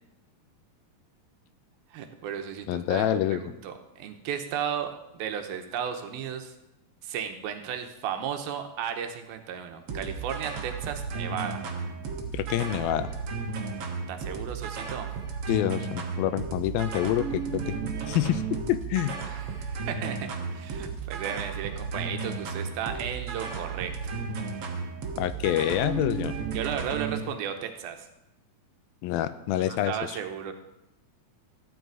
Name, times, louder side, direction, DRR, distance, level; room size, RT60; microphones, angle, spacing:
voice 1, 1.9-6.5 7.0-11.6 14.1-15.1 19.3-24.1 26.5-28.1 29.6-30.5, right 8 dB, 85° right, 6 dB, 2.8 m, -35 dB
voice 2, 2.7-3.4 12.3-13.1 15.5-17.8 18.1-19.2 25.2-26.3 29.0-30.2, left 12 dB, 85° left, 13 dB, 2.4 m, -27 dB
sound 1, 9.9-27.2, right 5 dB, 55° right, 1.6 m, -34 dB
13.5 x 9.4 x 4.7 m, 0.91 s
omnidirectional pair, 4.2 m